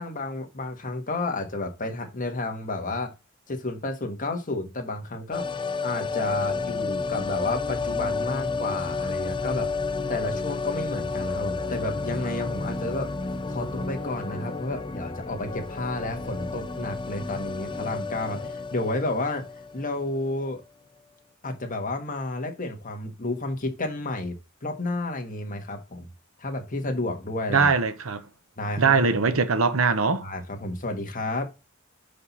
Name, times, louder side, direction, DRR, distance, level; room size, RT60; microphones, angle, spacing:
voice 1, 0.0-3.1 3.5-5.5 5.8-9.7 10.1-13.1 13.5-19.4 19.7-20.6 21.4-26.1 26.4-27.7 28.6-29.0 30.2-31.5, left 2 dB, 40° left, 1.5 m, -31 dB
sound 1, 5.3-20.2 20.5-20.6, left 4 dB, 25° left, 0.5 m, -31 dB
voice 2, 27.5-28.2 28.8-30.3, right 4 dB, 80° right, 0.9 m, -21 dB
5.7 x 5.2 x 4.1 m
head